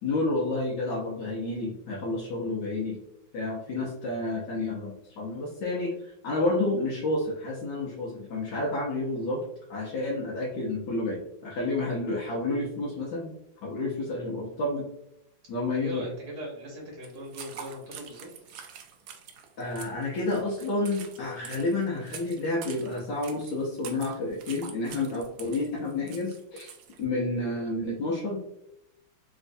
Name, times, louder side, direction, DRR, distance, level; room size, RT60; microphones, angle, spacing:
voice 1, 0.0-3.0 3.3-9.4 9.7-13.3 13.6-14.9 15.5-16.0 19.6-26.7 27.0-28.4, left 2 dB, 70° left, -5 dB, 1.3 m, -30 dB
voice 2, 15.6-18.3, equal, 60° right, -3 dB, 1.4 m, -39 dB
sound 1, 17.0-27.0, right 7 dB, 75° right, 0.9 m, -46 dB
3.4 x 3.0 x 2.5 m, 0.83 s
omnidirectional pair, 2.1 m